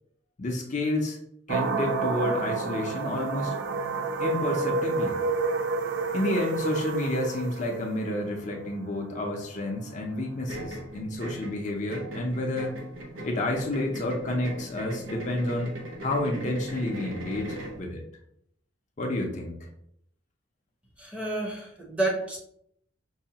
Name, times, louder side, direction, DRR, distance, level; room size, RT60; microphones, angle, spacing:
voice 1, 0.4-1.2 1.5-3.6 4.2-5.2 6.1-12.7 13.2-15.7 16.0-18.0 19.0-19.5, left 1 dB, 40° left, 1 dB, 0.5 m, -30 dB
sound 1, 1.5-10.4, right 4 dB, 65° right, 0.3 m, -30 dB
sound 2, 10.5-17.8, right 1 dB, 85° right, 0.7 m, -39 dB
voice 2, 21.0-22.4, right 2 dB, 5° right, -1 dB, 0.7 m, -29 dB
5.4 x 2.2 x 2.7 m, 0.70 s
head